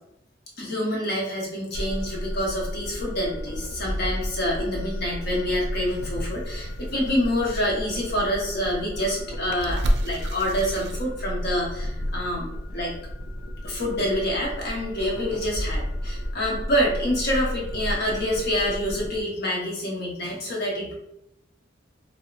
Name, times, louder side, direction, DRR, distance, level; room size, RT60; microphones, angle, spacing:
voice 1, 0.6-13.0 13.6-20.9, equal, 55° left, -3 dB, 0.9 m, -27 dB
sound 1, 1.7-19.2, equal, 85° left, 0.5 m, -33 dB
sound 2, 5.8-11.5, equal, 60° right, 0.4 m, -32 dB
4.2 x 2.0 x 2.4 m, 0.82 s
head